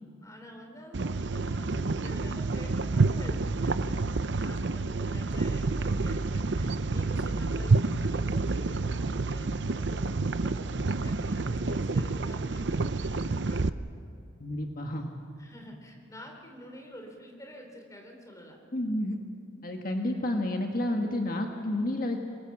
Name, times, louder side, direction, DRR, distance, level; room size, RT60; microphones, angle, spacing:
voice 1, 0.2-13.7 15.4-18.6, equal, 15° left, 2 dB, 3.4 m, -48 dB
sound 1, 0.9-13.7, right 3 dB, 65° right, 0.7 m, -28 dB
voice 2, 14.4-15.1 18.7-19.2 19.6-22.2, left 1 dB, 45° left, 2 dB, 1.7 m, -30 dB
25.0 x 21.5 x 7.3 m, 2.5 s
head